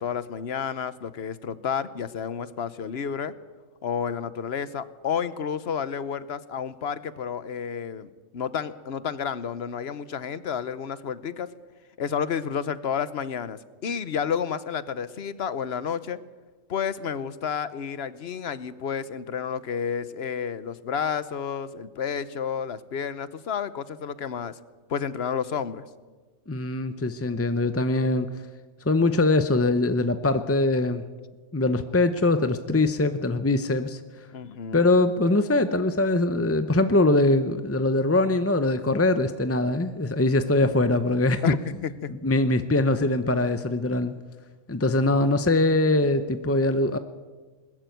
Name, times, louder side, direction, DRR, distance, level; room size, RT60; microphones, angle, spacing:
voice 1, 0.0-3.3 3.8-11.5 12.0-16.2 16.7-24.6 24.9-25.8 34.3-34.8 41.4-42.1, left 7 dB, 55° left, 15 dB, 1.0 m, -30 dB
voice 2, 26.5-28.4 28.9-31.0 31.5-34.0 34.7-41.4 42.1-44.1 44.7-47.0, left 2 dB, 15° left, 10 dB, 0.5 m, -22 dB
21.0 x 14.0 x 9.3 m, 1.4 s
omnidirectional pair, 1.4 m